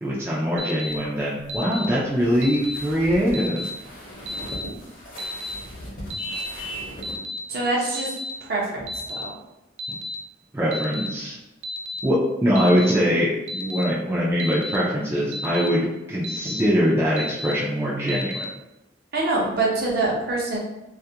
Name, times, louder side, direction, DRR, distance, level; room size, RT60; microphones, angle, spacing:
voice 1, 0.0-3.7 10.5-11.4 12.0-18.4, equal, 15° right, -7 dB, 0.3 m, -22 dB
Alarm, 0.6-0.9 1.5-1.9 2.4-2.8 3.3-3.7 4.3-4.6 5.2-5.5 6.1-6.5 7.0-7.4 7.9-8.3 8.9-9.2 9.8-10.1 10.7-11.1 11.6-12.0 12.6-12.9 13.5-13.8 14.4-14.8 15.3-15.7 16.2-16.6 17.2-17.5 18.1-18.4, left 1 dB, 85° right, 0.3 m, -32 dB
sound 1, 0.9-7.2, equal, 50° left, 0.7 m, -40 dB
Vehicle horn car horn honking, 6.2-7.0, right 1 dB, 75° left, 0.3 m, -34 dB
voice 2, 7.5-8.1 8.4-8.8 9.1-9.4 19.1-20.6, right 2 dB, 55° right, -3 dB, 0.7 m, -24 dB
2.3 x 2.1 x 2.7 m, 0.94 s
head